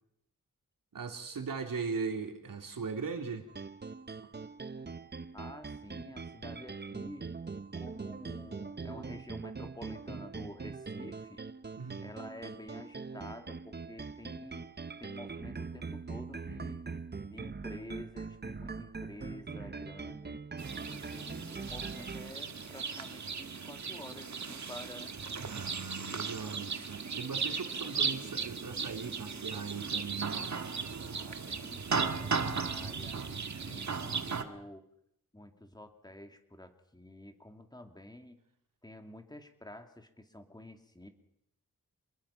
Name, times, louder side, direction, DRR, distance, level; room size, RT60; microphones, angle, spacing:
voice 1, 0.9-3.5 11.8-12.1 25.5-30.4, right 5 dB, 80° right, 4 dB, 3.2 m, -39 dB
sound 1, 3.5-22.3, right 4 dB, 30° right, 0.8 m, -42 dB
voice 2, 5.3-7.3 7.7-11.4 12.0-14.7 15.0-16.8 17.3-20.4 20.9-25.2 31.0-33.2 33.7-34.9 35.3-38.4 38.8-41.1, left 1 dB, 10° left, 6 dB, 2.5 m, -49 dB
sound 2, 20.6-34.4, right 5 dB, 55° right, 1.7 m, -36 dB
27.0 x 21.0 x 5.8 m, 0.74 s
wide cardioid pair, 120°, 33 cm